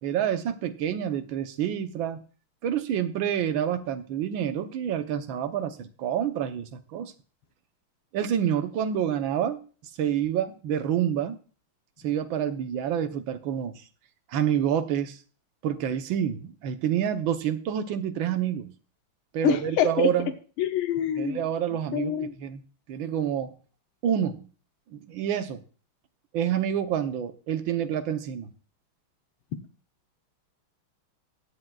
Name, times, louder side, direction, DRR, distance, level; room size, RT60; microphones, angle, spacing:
voice 1, 0.0-2.2 2.6-7.1 8.1-9.6 10.0-11.4 12.0-13.8 14.3-15.2 15.6-18.7 19.3-20.3 21.2-22.6 22.9-23.5 24.0-24.5 24.9-25.6 26.3-28.5, right 9 dB, 70° right, 9 dB, 1.6 m, -28 dB
voice 2, 19.4-20.1 20.6-21.4 21.9-22.3, left 10 dB, 80° left, 7 dB, 1.7 m, -25 dB
16.5 x 9.7 x 2.4 m, 0.37 s
omnidirectional pair, 2.3 m